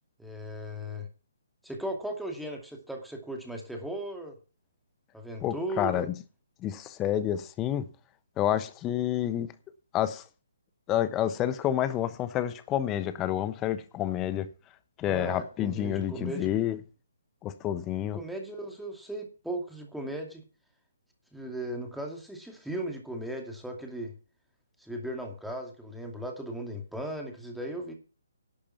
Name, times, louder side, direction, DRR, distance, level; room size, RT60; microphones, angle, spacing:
voice 1, 0.2-1.1 1.6-4.4 5.1-6.1 15.0-16.5 18.1-20.4 21.3-24.1 24.8-27.9, right 1 dB, ahead, 2.5 m, -37 dB
voice 2, 5.4-6.1 6.6-7.9 8.4-9.5 9.9-10.2 10.9-14.5 15.0-16.8 17.4-18.2, left 11 dB, 20° left, 1.1 m, -29 dB
11.5 x 8.5 x 5.9 m
figure-of-eight pair, 140°, 0 cm